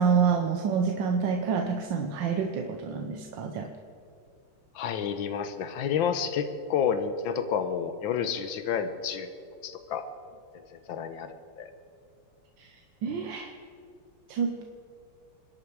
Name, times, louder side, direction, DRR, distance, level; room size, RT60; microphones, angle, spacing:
voice 1, 0.0-3.7 12.6-13.5 14.3-14.6, right 6 dB, 65° right, 4 dB, 1.5 m, -28 dB
voice 2, 4.7-9.3 9.6-10.0 10.7-11.7, left 7 dB, 65° left, 9 dB, 1.6 m, -30 dB
27.5 x 10.5 x 4.7 m, 2.4 s
omnidirectional pair, 2.4 m